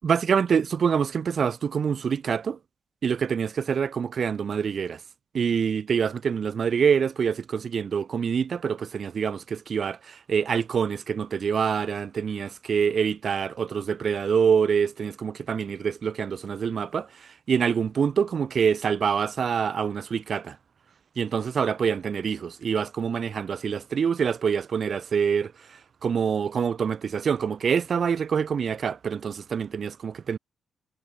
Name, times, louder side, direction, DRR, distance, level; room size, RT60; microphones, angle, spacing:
voice 1, 0.0-2.6 3.0-5.0 5.3-20.6 21.2-30.4, right 7 dB, 40° right, 7.9 m, -26 dB
wide cardioid pair, 165°, 0 cm